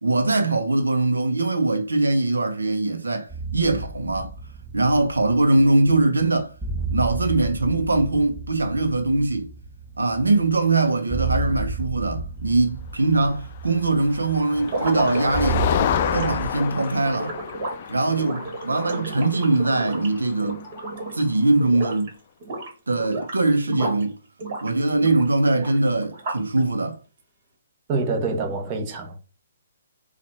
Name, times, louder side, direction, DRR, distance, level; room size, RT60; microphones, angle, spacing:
voice 1, 0.0-4.3 4.7-6.6 6.9-9.5 10.0-15.6 16.1-17.4 17.9-20.6 21.1-22.1 22.9-24.1 24.6-27.0, right 2 dB, 90° right, 0.8 m, -22 dB
sound 1, 3.3-16.5, right 3 dB, 10° right, 0.8 m, -32 dB
Motor vehicle (road), 13.7-21.5, left 10 dB, 45° left, 0.3 m, -30 dB
sound 2, 14.6-21.3 21.6-22.1 22.4-24.1 24.4-26.6, right 2 dB, 50° right, 1.7 m, -32 dB
voice 2, 27.9-29.2, right 3 dB, 30° right, 1.1 m, -26 dB
4.2 x 2.5 x 4.3 m
hypercardioid pair, 135°, 0 cm